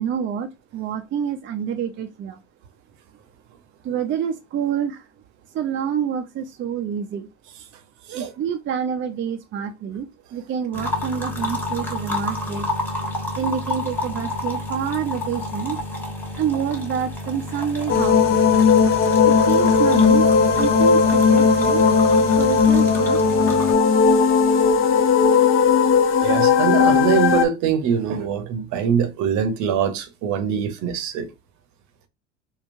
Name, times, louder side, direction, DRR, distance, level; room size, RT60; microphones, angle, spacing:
voice 1, 0.0-2.4 3.8-5.1 5.5-7.3 8.1-12.7 13.4-15.8 16.3-18.4 19.2-21.8 22.3-23.2, right 8 dB, 35° right, 0.5 m, -27 dB
sound 1, 10.7-23.7, left 1 dB, 5° left, 1.2 m, -30 dB
sound 2, 17.9-27.5, left 5 dB, 35° left, 0.6 m, -16 dB
voice 2, 26.2-31.3, right 7 dB, 55° right, 0.8 m, -23 dB
3.7 x 2.2 x 2.6 m
hypercardioid pair, 70°, 35 cm